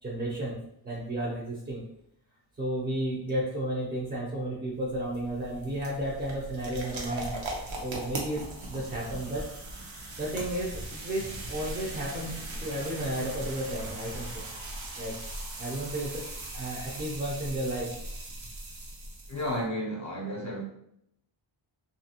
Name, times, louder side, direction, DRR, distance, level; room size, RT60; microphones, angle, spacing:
voice 1, 0.0-0.5 0.8-1.8 2.5-7.3 7.8-9.5 10.2-14.5 15.0-15.2 15.6-16.2 16.5-17.9, right 1 dB, 20° right, -4 dB, 0.5 m, -33 dB
sound 1, 4.7-19.6, right 1 dB, 80° right, 0.8 m, -39 dB
voice 2, 19.3-20.6, equal, 40° left, -1 dB, 0.6 m, -32 dB
2.7 x 2.5 x 2.7 m, 0.76 s
wide cardioid pair, 125°, 46 cm